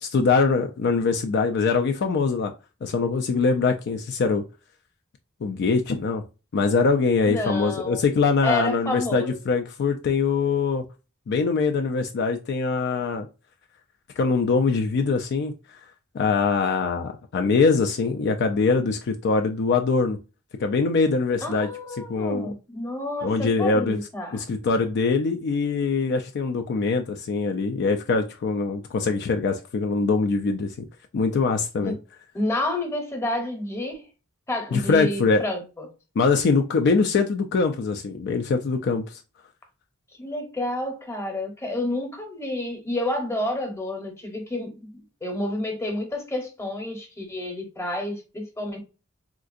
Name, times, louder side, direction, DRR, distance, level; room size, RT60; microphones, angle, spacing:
voice 1, 0.0-2.5 2.8-4.4 5.4-6.2 6.5-10.8 11.3-13.3 14.2-15.5 16.1-20.2 20.6-21.7 22.1-22.5 23.2-24.0 24.3-30.7 31.1-31.9 34.7-35.4 36.2-39.2, left 4 dB, 55° left, 0.4 m, -23 dB
voice 2, 7.2-8.0 8.4-9.4 21.4-24.5 31.8-32.0 32.3-34.0 34.5-35.9 40.2-48.8, left 1 dB, 15° left, 0.9 m, -30 dB
3.6 x 2.4 x 2.4 m
head